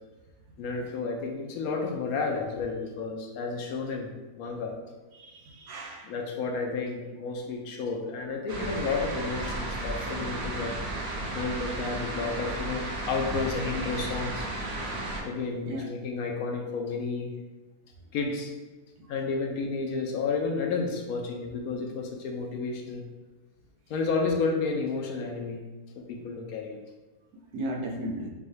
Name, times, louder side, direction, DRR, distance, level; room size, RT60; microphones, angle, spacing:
voice 1, 0.6-4.7 6.0-10.7 11.3-14.5 15.3-17.3 18.1-18.5 19.1-23.0 23.9-25.6 26.0-26.8, left 4 dB, 70° left, 2 dB, 1.0 m, -31 dB
voice 2, 5.1-6.1 11.1-11.3 15.6-15.8 27.5-28.3, right 1 dB, 80° right, 0 dB, 1.2 m, -35 dB
sound 1, 8.5-15.2, right 2 dB, 50° right, 0.9 m, -34 dB
5.2 x 2.3 x 3.2 m, 1.2 s
omnidirectional pair, 1.7 m